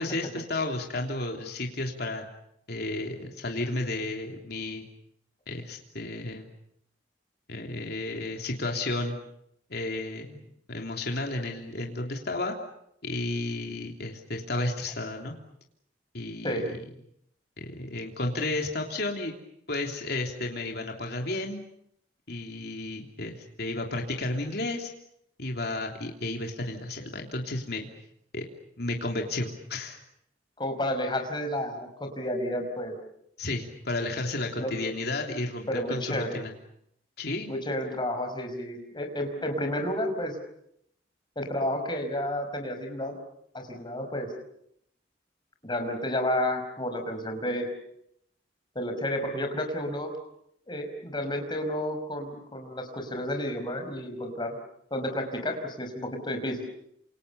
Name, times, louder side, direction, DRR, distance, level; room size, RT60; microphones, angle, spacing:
voice 1, 0.0-2.3 2.7-4.8 5.5-6.5 7.5-9.1 9.7-12.6 13.0-15.3 16.1-16.8 17.6-19.3 19.7-21.6 22.3-24.9 25.4-27.9 28.3-28.4 28.8-30.0 33.4-36.5 37.2-37.5, left 2 dB, 60° left, 2 dB, 3.2 m, -32 dB
voice 2, 30.6-33.0 34.6-34.7 35.7-36.4 37.5-40.4 41.3-43.1 43.5-44.3 45.6-47.7 48.7-50.1 50.7-54.6 54.9-56.6, left 1 dB, 25° left, 5 dB, 5.1 m, -31 dB
28.5 x 27.0 x 7.0 m, 0.74 s
head